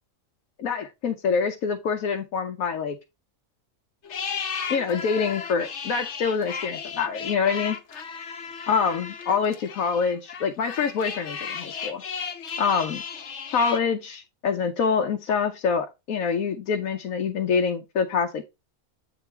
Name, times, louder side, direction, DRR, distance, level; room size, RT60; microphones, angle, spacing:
voice 1, 0.6-3.0 4.7-7.8 8.7-12.0 12.6-13.0 13.5-18.5, left 5 dB, 90° left, 1.2 m, -25 dB
sound 1, 4.0-13.8, left 6 dB, 60° left, 1.1 m, -35 dB
8.1 x 3.9 x 4.4 m
omnidirectional pair, 1.4 m